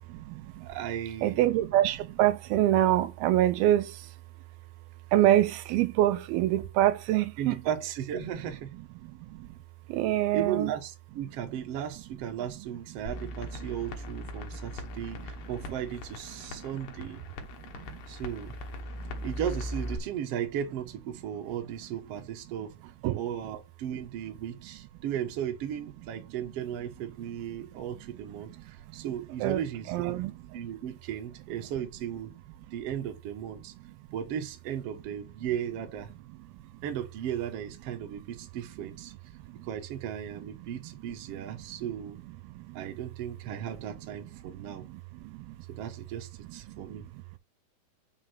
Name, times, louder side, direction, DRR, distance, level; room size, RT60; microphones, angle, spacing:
voice 1, 0.1-0.7 1.2-4.1 5.1-7.6 9.1-9.6 9.9-10.7 12.6-12.7 13.7-13.8 15.2-15.3 16.4-16.6 17.7-18.0 19.0-19.3 23.0-23.2 27.7-27.8 28.9-29.1 29.4-29.6 29.9-30.3 36.5-36.6 39.5-39.7 40.6-40.7 41.3-41.6 42.4-42.8 43.5-43.6 44.7-45.6 46.7-47.0, right 13 dB, 85° right, 2.5 m, -27 dB
voice 2, 0.6-1.5 7.4-8.7 10.3-17.2 18.1-18.5 19.2-22.7 23.1-30.1 30.5-32.3 32.7-33.7 34.1-36.1 36.8-39.1 39.6-42.2 42.7-44.9 45.7-47.0, right 9 dB, 60° right, 1.6 m, -36 dB
sound 1, 13.1-20.0, left 1 dB, 70° left, 2.7 m, -39 dB
5.7 x 4.9 x 5.9 m
omnidirectional pair, 4.3 m